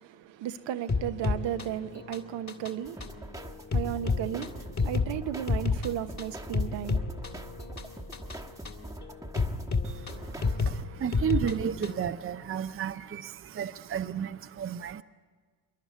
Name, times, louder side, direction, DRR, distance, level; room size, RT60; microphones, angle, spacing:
voice 1, 0.0-7.2, right 11 dB, 65° right, 1.1 m, -35 dB
sound 1, 0.9-12.1, left 4 dB, 35° left, 2.1 m, -32 dB
sound 2, 2.9-10.8, right 1 dB, 5° right, 1.3 m, -43 dB
voice 2, 9.8-15.0, right 8 dB, 25° right, 0.7 m, -33 dB
26.0 x 11.0 x 9.3 m
supercardioid pair, 80°, 48 cm